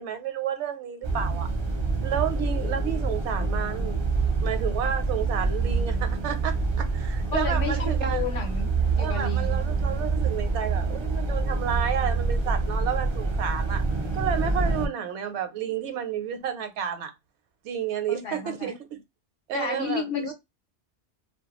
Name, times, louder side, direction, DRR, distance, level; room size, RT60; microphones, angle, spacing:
voice 1, 0.0-1.5 2.0-4.0 4.4-8.2 9.0-13.8 14.1-17.1 17.6-19.0 19.5-20.3, right 9 dB, 75° right, 0.9 m, -31 dB
sound 1, 1.0-14.9, right 3 dB, 35° right, 0.4 m, -26 dB
voice 2, 7.3-8.7 9.0-9.6 18.1-18.7 19.5-20.3, left 6 dB, 55° left, 0.9 m, -32 dB
2.3 x 2.1 x 2.9 m
omnidirectional pair, 1.2 m